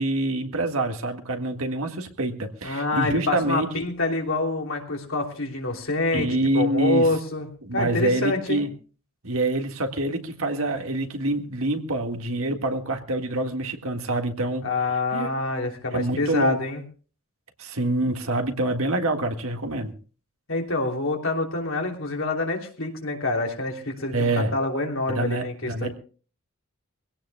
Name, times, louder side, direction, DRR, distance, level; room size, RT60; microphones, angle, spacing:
voice 1, 0.0-3.7 6.1-7.1 7.6-8.7 9.2-14.7 15.1-15.3 15.9-16.6 17.6-20.0 24.1-24.5 25.1-25.9, right 2 dB, 75° right, 5 dB, 1.7 m, -26 dB
voice 2, 2.6-8.6 14.6-16.8 20.5-25.9, left 2 dB, 65° left, 2 dB, 3.0 m, -26 dB
23.5 x 17.0 x 2.3 m, 0.38 s
head